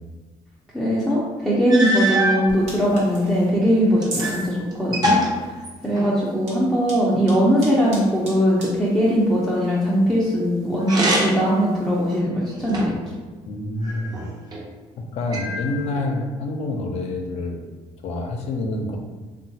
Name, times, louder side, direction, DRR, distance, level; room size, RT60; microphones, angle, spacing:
voice 1, 0.7-12.9, equal, ahead, -8 dB, 0.5 m, -20 dB
sound 1, 1.1-1.2 1.7-2.4 3.2-4.4 4.7-6.2 10.8-11.5 12.1-13.1 13.8-14.6 15.3-16.1, right 1 dB, 35° right, 0.7 m, -25 dB
sound 2, 2.5-12.2, right 2 dB, 80° right, 1.0 m, -42 dB
voice 2, 13.5-14.3 15.1-17.6 18.0-19.0, left 2 dB, 60° left, 2 dB, 0.5 m, -27 dB
2.9 x 2.3 x 2.7 m, 1.3 s
cardioid pair, 90°, 12 cm